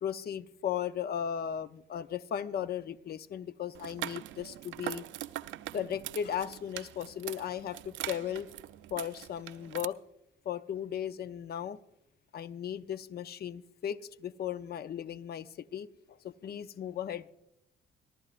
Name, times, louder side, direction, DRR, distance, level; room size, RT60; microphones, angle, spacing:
voice 1, 0.0-5.1 5.7-8.5 8.9-10.0 10.4-11.8 12.3-17.3, left 9 dB, 55° left, 14 dB, 0.6 m, -36 dB
sound 1, 3.7-9.8, right 14 dB, 75° right, 0.5 m, -42 dB
25.0 x 12.0 x 2.4 m, 0.83 s
cardioid pair, 90°, 20 cm